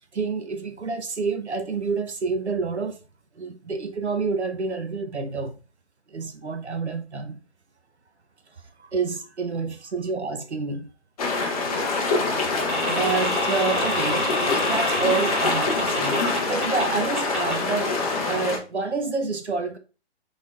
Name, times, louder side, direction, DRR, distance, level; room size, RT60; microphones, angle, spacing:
voice 1, 0.1-3.0 3.3-5.5 6.1-7.4 8.8-10.9 12.8-17.9 18.2-19.8, right 4 dB, 85° right, 1.1 m, -28 dB
sound 1, 11.2-18.6, left 3 dB, 35° left, 1.0 m, -25 dB
sound 2, 12.7-16.8 17.2-17.5, equal, 5° right, 0.6 m, -28 dB
4.1 x 3.7 x 3.3 m
figure-of-eight pair, 145°, 33 cm